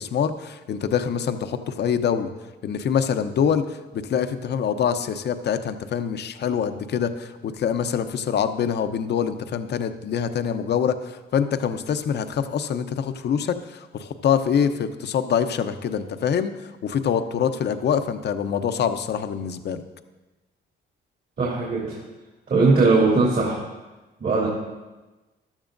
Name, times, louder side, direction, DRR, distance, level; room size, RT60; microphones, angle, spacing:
voice 1, 0.0-2.3 2.6-16.5 16.8-19.8, left 7 dB, 60° left, 9 dB, 0.7 m, -25 dB
voice 2, 21.4-22.0 22.5-23.6 24.2-24.5, right 3 dB, 50° right, -4 dB, 2.8 m, -19 dB
14.5 x 11.5 x 2.6 m, 1.1 s
cardioid pair, 90°, 20 cm